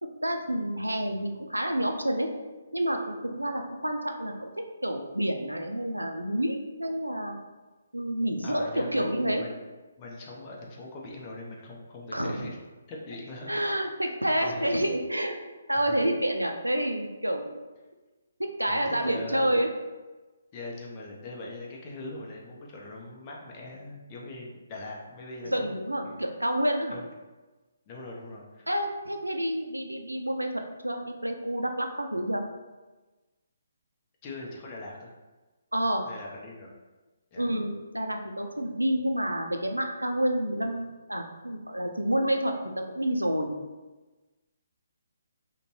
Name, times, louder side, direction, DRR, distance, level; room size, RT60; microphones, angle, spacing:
voice 1, 0.0-2.3 2.7-4.5 4.8-7.4 7.9-9.4 12.1-12.5 13.5-15.4 15.7-17.6 18.4-19.7 25.5-27.0 28.7-32.4 35.7-36.0 37.4-43.5, right 1 dB, 90° right, 4 dB, 0.3 m, -29 dB
voice 2, 8.4-9.6 10.0-12.6 12.9-13.6 14.0-14.7 15.7-16.0 18.7-19.6 20.5-25.7 26.0-26.2 26.9-27.0 27.9-28.7 34.2-35.1 36.0-36.7 37.3-37.5, left 2 dB, 25° left, -2 dB, 0.5 m, -41 dB
2.5 x 2.1 x 3.1 m, 1.2 s
figure-of-eight pair, 140°, 0 cm